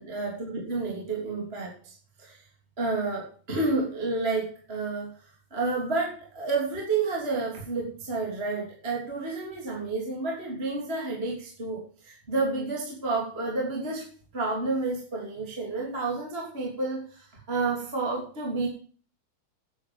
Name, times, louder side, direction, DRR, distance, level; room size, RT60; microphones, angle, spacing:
voice 1, 0.0-2.4 2.8-5.1 5.5-14.1 14.3-18.7, right 3 dB, 15° right, -3 dB, 2.8 m, -30 dB
9.8 x 9.6 x 7.8 m, 0.43 s
omnidirectional pair, 4.6 m